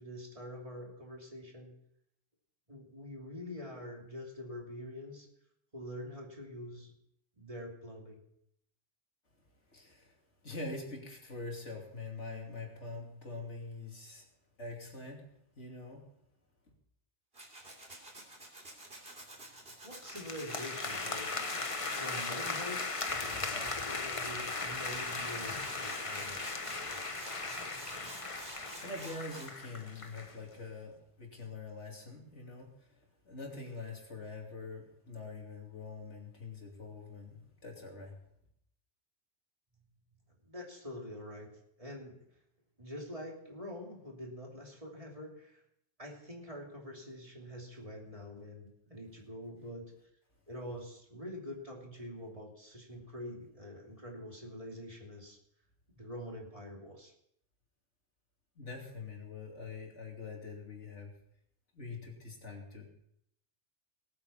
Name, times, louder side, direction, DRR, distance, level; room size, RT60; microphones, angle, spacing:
voice 1, 0.0-1.7 2.7-5.3 5.7-6.9 7.4-8.2 19.5-21.3 21.8-26.4 40.4-41.5 41.8-42.2 42.8-45.6 46.0-49.9 50.5-55.4 55.9-57.1, left 1 dB, 30° right, -1 dB, 2.9 m, -45 dB
voice 2, 9.7-10.1 10.4-14.2 14.6-15.2 15.5-16.0 28.3-32.7 33.2-38.1 58.6-61.1 61.7-62.9, left 3 dB, 80° left, 0 dB, 3.2 m, -44 dB
Tools, 17.3-22.2 24.6-24.7 24.9-29.5, right 1 dB, 55° right, 3.3 m, -49 dB
sound 1, 20.0-30.4, left 3 dB, 30° left, 1.1 m, -38 dB
19.0 x 8.7 x 5.7 m, 0.74 s
omnidirectional pair, 1.2 m